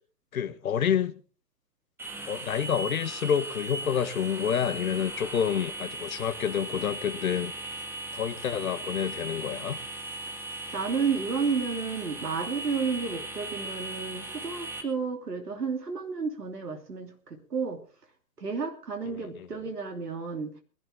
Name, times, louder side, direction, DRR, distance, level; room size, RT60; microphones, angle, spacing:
voice 1, 0.3-1.1 2.3-7.5 8.1-9.8 19.1-19.5, left 8 dB, 60° left, 1.5 m, -28 dB
sound 1, 2.0-14.8, right 2 dB, 5° right, 1.9 m, -38 dB
voice 2, 10.7-17.8 18.4-20.5, right 5 dB, 75° right, 3.2 m, -31 dB
22.0 x 12.5 x 3.7 m
figure-of-eight pair, 125°, 47 cm